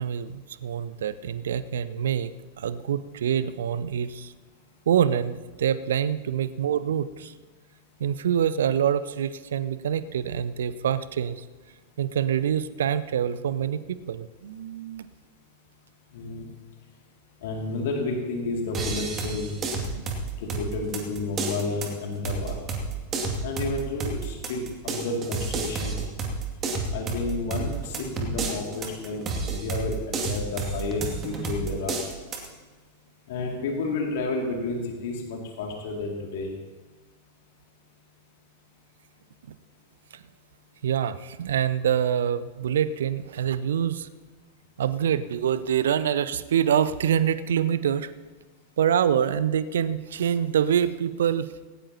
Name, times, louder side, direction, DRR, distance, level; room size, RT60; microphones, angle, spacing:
voice 1, 0.0-4.3 4.9-7.3 8.0-11.4 12.0-15.1 19.9-20.0 40.1-40.2 40.8-44.1 44.8-48.1 48.8-51.5, right 9 dB, 60° right, 15 dB, 0.6 m, -25 dB
voice 2, 16.1-16.5 17.4-19.6 20.4-22.6 23.4-26.0 26.9-32.0 33.3-36.5, left 3 dB, 55° left, 0 dB, 2.4 m, -31 dB
sound 1, 18.7-32.5, right 3 dB, 25° right, 2.3 m, -31 dB
18.0 x 17.5 x 2.9 m, 1.3 s
figure-of-eight pair, 90°, 0 cm